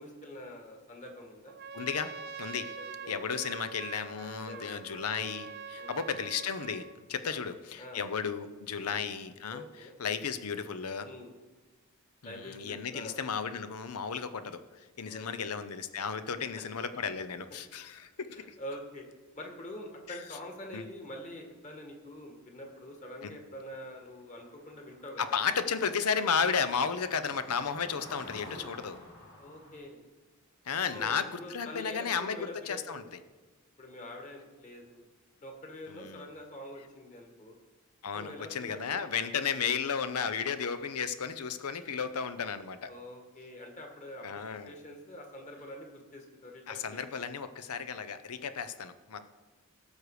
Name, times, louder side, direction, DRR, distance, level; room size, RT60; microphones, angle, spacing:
voice 1, 0.0-1.5 2.6-3.2 4.5-5.3 5.8-6.0 7.3-8.1 8.7-8.9 9.5-9.9 11.0-11.3 12.2-13.1 15.0-15.5 16.4-16.6 18.3-19.1 19.3-25.4 28.0-28.3 29.4-30.0 30.9-33.0 33.8-35.0 35.4-37.6 38.1-39.0 42.9-47.2, left 1 dB, 35° left, 2 dB, 1.9 m, -46 dB
Trumpet, 1.5-7.0, right 5 dB, 50° right, 0.7 m, -44 dB
voice 2, 1.7-2.1 2.4-2.7 3.1-9.6 10.0-11.1 12.2-14.6 15.0-18.5 20.7-20.8 23.2-23.3 25.2-29.0 30.7-33.0 35.9-36.2 38.0-42.9 44.2-44.7 46.7-49.3, left 6 dB, 85° left, 11 dB, 0.7 m, -34 dB
sound 1, 23.4-23.5 23.7-29.8, left 1 dB, 65° left, 4.6 m, -51 dB
17.5 x 6.5 x 4.9 m, 1.2 s
head